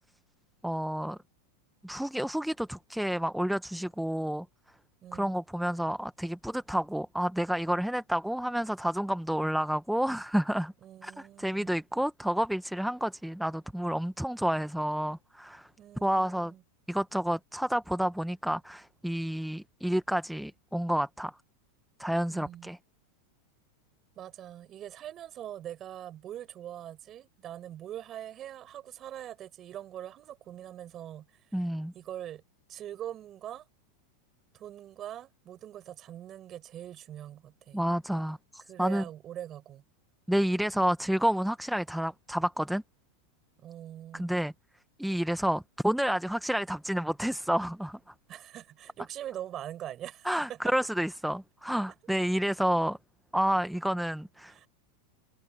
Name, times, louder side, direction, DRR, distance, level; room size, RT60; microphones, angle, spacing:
voice 1, 0.6-1.2 1.8-4.5 5.1-10.7 11.0-15.7 16.0-16.5 16.9-21.3 22.0-22.8 31.5-31.9 37.7-39.0 40.3-42.8 44.1-44.5 45.0-48.0 50.3-53.0 53.3-54.6, equal, ahead, 0.6 m, -30 dB
voice 2, 5.0-5.4 10.8-11.7 15.8-16.6 22.3-22.7 24.2-31.7 31.9-32.4 32.7-33.7 34.5-37.9 38.6-39.8 43.6-44.3 48.3-50.6 54.5-54.7, right 11 dB, 30° right, 5.3 m, -43 dB
supercardioid pair, 150°, 0 cm